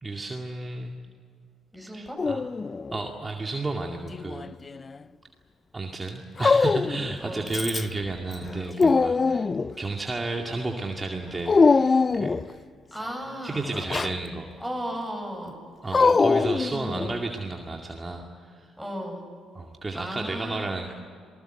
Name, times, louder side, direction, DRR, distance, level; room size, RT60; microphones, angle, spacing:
voice 1, 0.0-1.0 1.9-2.4 2.9-4.5 5.7-9.5 9.8-12.3 13.4-14.5 15.8-18.7 19.6-20.9, right 2 dB, 25° right, 2 dB, 2.3 m, -32 dB
voice 2, 1.7-2.2 6.8-7.5 9.1-9.4 12.9-13.7 14.6-15.6 18.8-19.2 19.9-20.7, equal, 5° left, 3 dB, 7.8 m, -35 dB
Dog, 2.2-3.0 4.1-5.0 6.4-7.1 7.5-8.0 8.4-9.8 11.5-12.5 13.7-14.2 15.9-17.2, left 4 dB, 35° left, 0.6 m, -22 dB
28.0 x 20.0 x 7.8 m, 2.2 s
hypercardioid pair, 50°, 0 cm